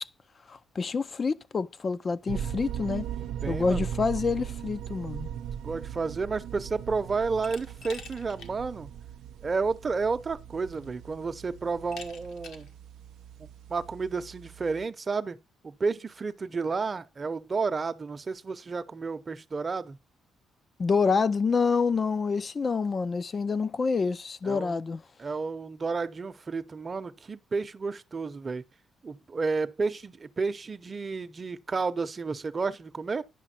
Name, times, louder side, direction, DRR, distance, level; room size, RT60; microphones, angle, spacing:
voice 1, 0.5-3.0 3.5-5.3 20.8-25.0, left 5 dB, 40° left, 0.5 m, -27 dB
sound 1, 2.3-14.8, right 9 dB, 80° right, 0.5 m, -39 dB
voice 2, 3.4-3.9 5.6-8.9 9.4-12.7 13.4-15.4 15.6-20.0 24.4-24.8 25.2-28.6 29.0-33.2, right 4 dB, 35° right, 0.8 m, -31 dB
Glass, 7.4-8.5 8.9-9.0 10.2-10.3 10.7-11.1 11.9-12.7, left 5 dB, 80° left, 1.7 m, -46 dB
10.0 x 5.8 x 4.4 m
cardioid pair, 90°, 0 cm